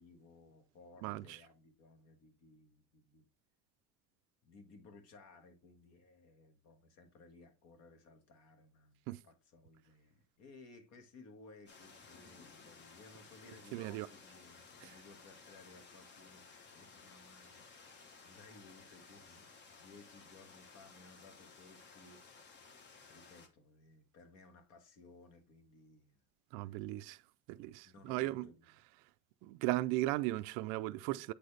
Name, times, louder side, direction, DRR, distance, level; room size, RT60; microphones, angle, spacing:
voice 1, 0.0-3.3 4.4-26.2 26.6-26.7 27.8-28.7, left 3 dB, 50° left, 1.4 m, -60 dB
voice 2, 1.0-1.4 9.1-9.2 13.7-14.1 14.8-14.9 26.5-27.2 27.5-28.5 29.4-31.3, right 17 dB, 75° right, 0.5 m, -37 dB
sound 1, 11.7-23.5, left 4 dB, 30° left, 1.0 m, -57 dB
8.5 x 4.0 x 3.2 m
cardioid pair, 165°, 33 cm